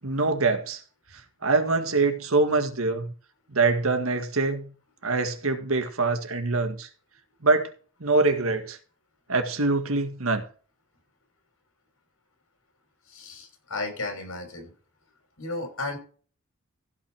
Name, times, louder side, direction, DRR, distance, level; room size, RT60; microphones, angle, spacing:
voice 1, 0.0-0.8 1.1-3.1 3.5-4.7 5.0-6.9 7.4-7.7 8.0-8.8 9.3-10.4, right 3 dB, 85° right, 1.8 m, -24 dB
voice 2, 13.1-14.7 15.4-16.0, left 2 dB, 90° left, 5.8 m, -34 dB
15.5 x 5.8 x 4.8 m
head